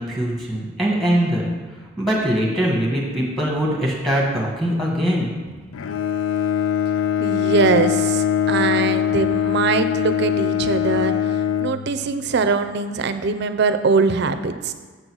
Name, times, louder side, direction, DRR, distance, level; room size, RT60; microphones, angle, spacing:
voice 1, 0.0-1.5 2.0-5.3, equal, ahead, -4 dB, 1.5 m, -22 dB
Bowed string instrument, 5.7-12.4, left 9 dB, 85° left, 0.3 m, -22 dB
voice 2, 7.2-14.7, right 4 dB, 60° right, 9 dB, 0.4 m, -22 dB
7.7 x 3.9 x 6.2 m, 1.4 s
head